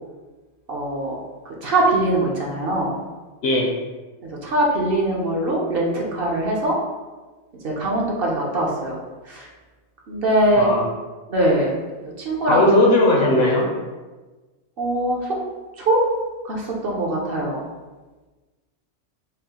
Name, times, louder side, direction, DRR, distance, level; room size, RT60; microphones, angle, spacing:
voice 1, 0.7-1.2 1.6-2.9 4.2-6.8 7.6-9.0 9.2-9.5 10.1-10.7 11.3-11.7 12.0-12.6 14.8-15.4 15.8-16.0 16.4-17.6, right 1 dB, 55° right, -2 dB, 0.8 m, -22 dB
voice 2, 12.5-13.7, left 1 dB, 65° left, -1 dB, 0.8 m, -17 dB
5.3 x 2.1 x 2.8 m, 1.2 s
omnidirectional pair, 1.2 m